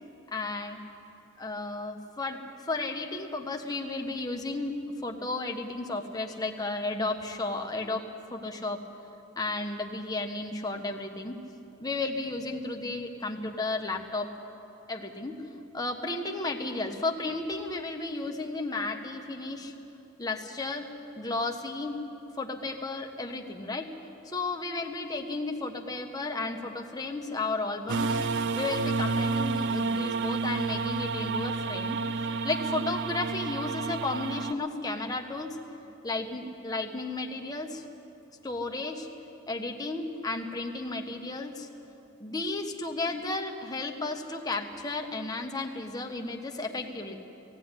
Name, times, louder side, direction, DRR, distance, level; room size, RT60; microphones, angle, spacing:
voice 1, 0.3-0.8 1.4-4.7 5.0-8.0 8.3-8.8 9.4-11.4 11.8-14.3 14.9-15.4 15.7-19.7 20.2-20.9 21.2-22.0 22.4-23.9 24.2-28.2 28.5-32.0 32.4-35.6 36.0-37.8 38.4-39.1 39.5-41.7 42.2-47.2, left 2 dB, 20° left, 3 dB, 1.3 m, -33 dB
sound 1, 27.9-34.5, right 4 dB, 55° right, 0.5 m, -30 dB
18.0 x 16.5 x 9.8 m, 2.8 s
head